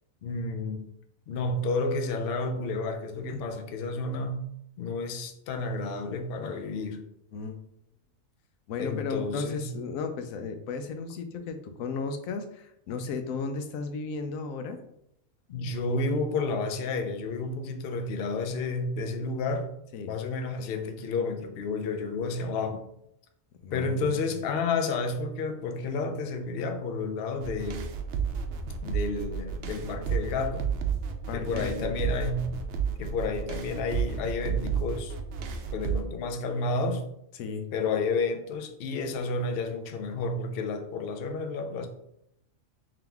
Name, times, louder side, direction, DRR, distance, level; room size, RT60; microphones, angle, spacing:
voice 1, 0.2-0.8 1.3-4.5 4.8-7.0 8.8-9.7 15.5-19.7 20.1-22.8 23.7-27.8 28.8-30.7 31.3-32.5 33.0-35.1 35.7-37.0 37.7-41.9, left 3 dB, 60° left, 5 dB, 0.6 m, -31 dB
voice 2, 8.7-14.8 19.9-20.1 23.6-24.2 31.3-32.1 37.3-37.7, left 4 dB, 85° left, 7 dB, 1.0 m, -35 dB
sound 1, 27.4-36.0, right 6 dB, 65° right, 0.8 m, -32 dB
3.8 x 2.9 x 3.4 m, 0.77 s
omnidirectional pair, 1.4 m